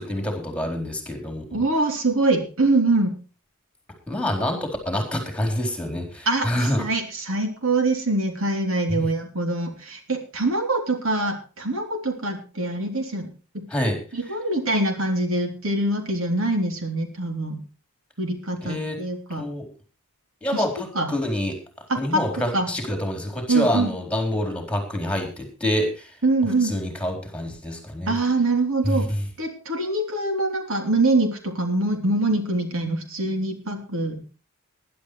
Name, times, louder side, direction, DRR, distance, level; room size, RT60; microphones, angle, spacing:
voice 1, 0.0-1.6 4.1-6.9 8.9-9.1 13.7-14.0 18.6-19.0 19.4-19.7 20.4-21.6 21.9-26.2 26.6-28.1 28.8-29.2, left 1 dB, 5° left, 4 dB, 4.1 m, -27 dB
voice 2, 1.5-3.1 6.2-13.3 14.1-17.6 18.2-19.5 20.5-20.6 20.9-21.1 21.9-22.7 23.5-23.9 26.2-26.7 28.1-29.1 29.4-34.3, right 2 dB, 65° right, 5 dB, 3.4 m, -24 dB
21.0 x 11.0 x 3.2 m, 0.34 s
head